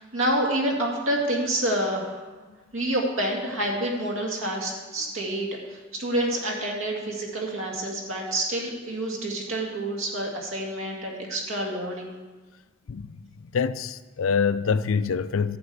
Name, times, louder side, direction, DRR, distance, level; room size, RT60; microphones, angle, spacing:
voice 1, 0.0-2.2 2.7-12.1, right 1 dB, 75° right, 2.2 m, -28 dB
voice 2, 13.5-15.6, left 5 dB, 85° left, 0.5 m, -25 dB
11.0 x 5.1 x 8.1 m
head